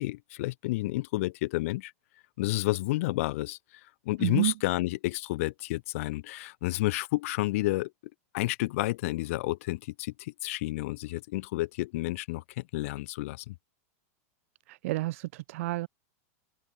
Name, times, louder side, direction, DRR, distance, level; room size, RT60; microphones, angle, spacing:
voice 1, 0.0-1.9 2.4-3.6 4.0-7.9 8.3-13.5, left 19 dB, 65° left, 4.8 m, -30 dB
voice 2, 4.2-4.5 14.7-15.9, right 19 dB, 65° right, 2.3 m, -30 dB
open air
supercardioid pair, 145°, 8 cm